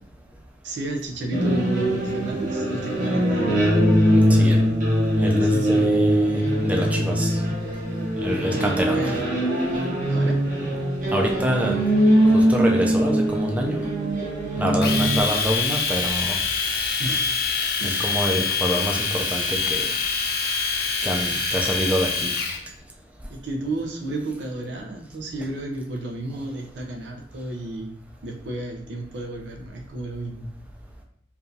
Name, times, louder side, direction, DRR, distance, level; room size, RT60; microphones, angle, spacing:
voice 1, 0.6-3.9 5.4-6.0 8.3-9.3 10.1-10.4 17.0-17.4 17.8-18.1 23.3-30.5, right 2 dB, 85° right, 2 dB, 0.6 m, -32 dB
sound 1, 1.3-15.2, equal, 50° right, 1.1 m, -21 dB
voice 2, 4.1-4.6 5.2-7.4 8.2-9.1 11.1-11.8 12.2-13.8 14.6-16.4 17.8-19.9 21.0-22.3, equal, 10° right, 0 dB, 0.4 m, -26 dB
Domestic sounds home sounds, 14.8-22.6, left 5 dB, 60° left, 0.6 m, -25 dB
4.7 x 2.6 x 2.7 m, 0.67 s
head